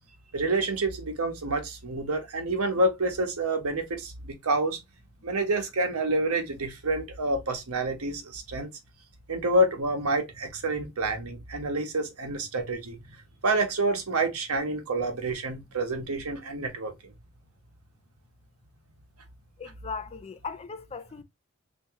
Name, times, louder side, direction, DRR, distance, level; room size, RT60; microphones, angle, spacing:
voice 1, 0.3-4.8 5.2-8.7 9.3-13.0 13.4-16.9, right 2 dB, 85° right, 1.0 m, -28 dB
voice 2, 19.6-21.2, left 5 dB, 30° left, 0.4 m, -38 dB
3.6 x 2.8 x 2.8 m
head